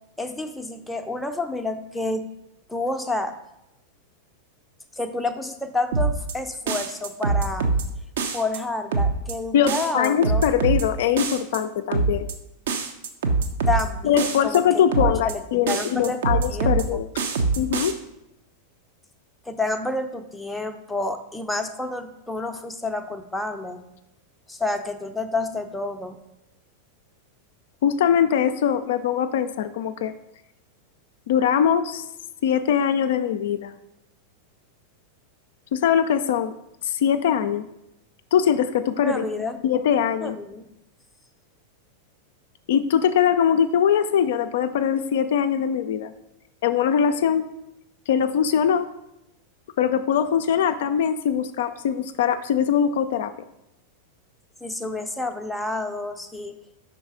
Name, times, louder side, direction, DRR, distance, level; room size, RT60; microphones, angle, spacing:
voice 1, 0.2-2.3 2.7-3.3 5.0-7.7 8.3-10.4 13.7-15.4 15.7-16.2 16.5-17.0 19.5-23.8 24.5-26.2 39.0-39.6 40.2-40.6 54.6-56.5, left 2 dB, 5° left, 5 dB, 0.5 m, -29 dB
sound 1, 5.9-6.3 6.7-7.8 8.2-8.6 8.9-9.3 9.7-10.8 11.2-11.6 11.9-12.3 12.7-13.8 14.2-14.6 14.9-15.3 15.7-16.8 17.2-17.9, right 4 dB, 60° right, 0.7 m, -23 dB
voice 2, 9.5-12.3 14.0-17.1 17.6-17.9 27.8-30.1 31.3-32.0 32.4-33.7 35.7-36.5 36.8-37.7 38.3-39.2 39.6-40.4 42.7-46.1 46.6-47.5 48.1-48.9 49.8-53.3, left 8 dB, 55° left, 9 dB, 0.3 m, -22 dB
5.4 x 4.0 x 4.8 m, 0.87 s
figure-of-eight pair, 90°, 0 cm